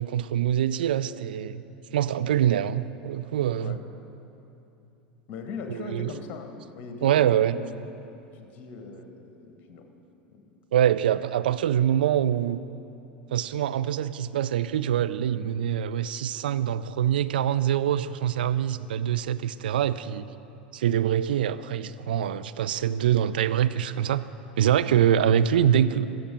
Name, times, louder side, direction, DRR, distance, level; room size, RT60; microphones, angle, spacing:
voice 1, 0.0-1.6 1.9-3.8 5.7-6.1 7.0-7.6 10.7-12.6 13.3-20.3 20.7-24.2 24.6-26.1, right 10 dB, 70° right, 14 dB, 0.3 m, -24 dB
voice 2, 5.3-7.8 8.3-9.9 10.3-10.4 24.8-25.1, left 4 dB, 40° left, 5 dB, 1.4 m, -40 dB
14.0 x 7.9 x 5.2 m, 2.8 s
figure-of-eight pair, 80°, 5 cm